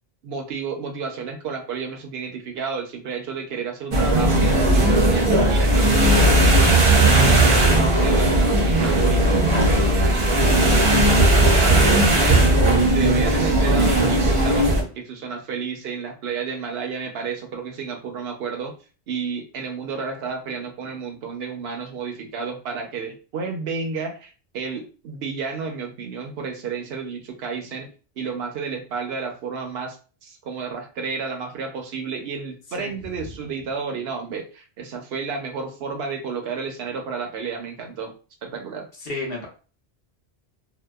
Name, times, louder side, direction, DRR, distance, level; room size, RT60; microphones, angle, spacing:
voice 1, 0.2-6.7 7.0-11.2 11.6-12.5 12.8-18.7 19.1-27.9 28.2-38.1 38.4-38.9, right 5 dB, 70° right, 3 dB, 0.8 m, -31 dB
sound 1, 3.9-14.8, right 1 dB, 40° right, 0.4 m, -17 dB
voice 2, 39.0-39.5, left 2 dB, 60° left, -1 dB, 1.0 m, -31 dB
2.7 x 2.1 x 2.2 m, 0.36 s
omnidirectional pair, 1.1 m